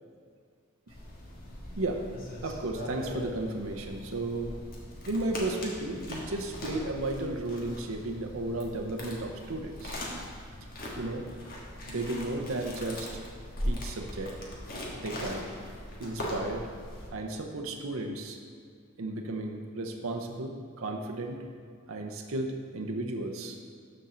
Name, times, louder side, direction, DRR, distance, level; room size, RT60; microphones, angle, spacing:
sound 1, 0.9-17.1, left 1 dB, 45° left, 1.4 m, -40 dB
voice 1, 2.4-4.5 5.1-10.0 11.0-11.2 11.9-13.3 13.6-14.4 14.9-15.5 16.0-16.7 17.1-18.4 19.0-21.4 21.9-23.6, right 2 dB, 65° right, 3 dB, 0.7 m, -34 dB
12.5 x 4.3 x 3.8 m, 2.2 s
head